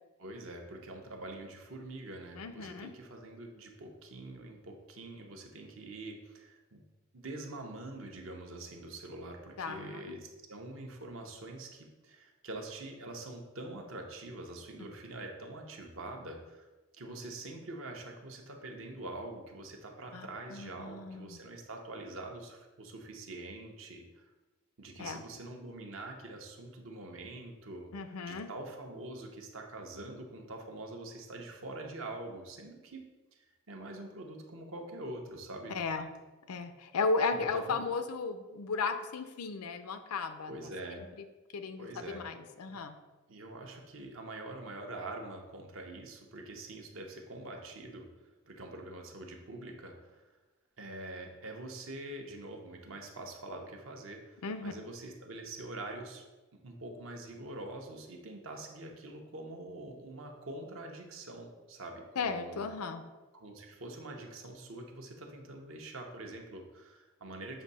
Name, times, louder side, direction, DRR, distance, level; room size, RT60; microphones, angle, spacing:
voice 1, 0.2-6.8 7.1-16.7 16.9-24.2 24.8-27.9 28.2-33.0 33.3-33.4 33.7-35.7 37.3-37.9 40.5-41.1 41.8-42.3 42.7-42.8 43.3-50.2 50.8-56.2 56.6-62.6 63.3-67.6, right 2 dB, 65° right, 2 dB, 1.0 m, -45 dB
voice 2, 2.4-2.9 9.6-10.1 20.1-21.4 25.0-25.2 27.9-28.5 35.7-36.1 36.5-40.5 41.0-41.1 41.5-43.0 54.4-54.7 62.2-63.0, left 4 dB, 90° left, 9 dB, 0.5 m, -35 dB
7.2 x 2.7 x 5.4 m, 1.1 s
head